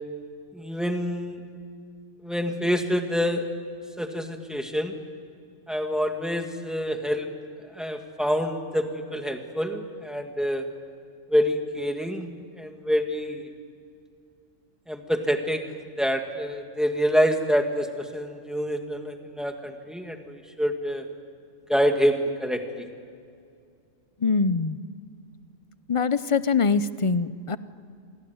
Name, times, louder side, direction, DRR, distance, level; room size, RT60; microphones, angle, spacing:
voice 1, 0.5-1.4 2.2-3.5 4.0-4.9 5.7-7.3 7.6-10.7 11.3-13.5 14.9-15.6 16.0-21.1 21.7-22.9, equal, ahead, 4 dB, 2.0 m, -26 dB
voice 2, 24.2-24.8 25.9-27.6, left 5 dB, 35° left, 14 dB, 0.5 m, -23 dB
27.5 x 21.0 x 9.5 m, 2.4 s
omnidirectional pair, 1.4 m